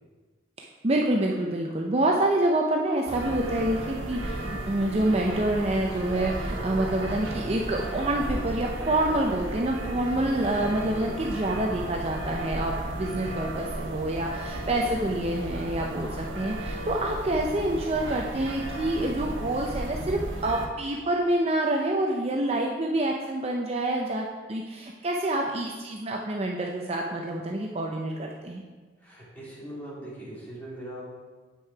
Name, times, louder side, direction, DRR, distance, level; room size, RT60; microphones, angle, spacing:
voice 1, 0.6-28.6, right 1 dB, 30° right, 0 dB, 0.6 m, -27 dB
sound 1, 3.1-20.7, right 1 dB, 85° right, 1.1 m, -34 dB
voice 2, 29.0-31.0, right 1 dB, 10° left, -8 dB, 2.7 m, -40 dB
8.3 x 6.1 x 4.7 m, 1.3 s
head